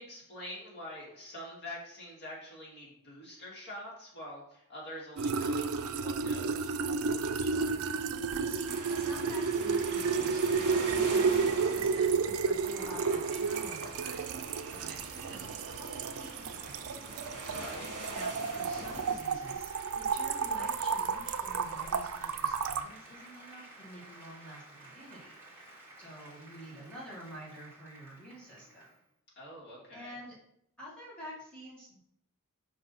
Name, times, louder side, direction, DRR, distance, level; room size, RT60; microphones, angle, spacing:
voice 1, 0.0-6.8 17.5-18.0 29.4-30.2, left 1 dB, 50° left, -4 dB, 2.2 m, -46 dB
sound 1, 5.2-22.8, right 5 dB, 65° right, 0.4 m, -32 dB
voice 2, 7.4-8.0 8.4-14.3 14.7-17.0 18.1-25.3 26.0-28.9 29.9-30.3 30.8-32.0, equal, 5° left, -8 dB, 1.6 m, -49 dB
sound 2, 8.7-19.2, right 2 dB, 50° right, 1.7 m, -43 dB
Applause, 17.5-29.1, right 2 dB, 10° right, 2.1 m, -53 dB
5.1 x 3.9 x 5.7 m, 0.75 s
head